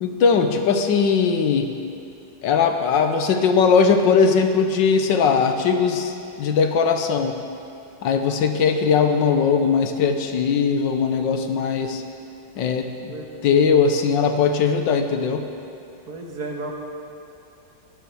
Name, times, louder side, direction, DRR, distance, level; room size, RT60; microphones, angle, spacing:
voice 1, 0.0-1.7 2.4-7.4 8.0-12.0 12.6-13.1 13.4-15.4, left 5 dB, 80° left, 6 dB, 1.6 m, -19 dB
voice 2, 16.1-16.7, right 3 dB, 55° right, 1 dB, 1.8 m, -32 dB
17.0 x 12.0 x 4.7 m, 2.7 s
omnidirectional pair, 2.0 m